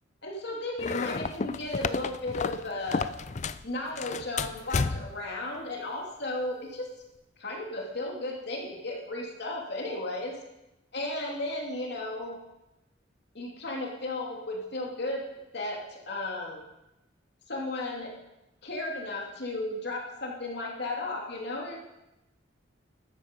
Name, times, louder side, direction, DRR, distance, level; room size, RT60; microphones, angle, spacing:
voice 1, 0.2-3.1 3.6-6.9 7.4-10.3 10.9-12.4 13.3-15.2 15.5-16.6 17.5-18.1 18.6-21.8, left 2 dB, 60° left, -1 dB, 2.7 m, -34 dB
sound 1, 0.8-3.7 4.0-5.3, left 4 dB, 40° left, 0.5 m, -31 dB
14.0 x 13.0 x 5.3 m, 0.96 s
head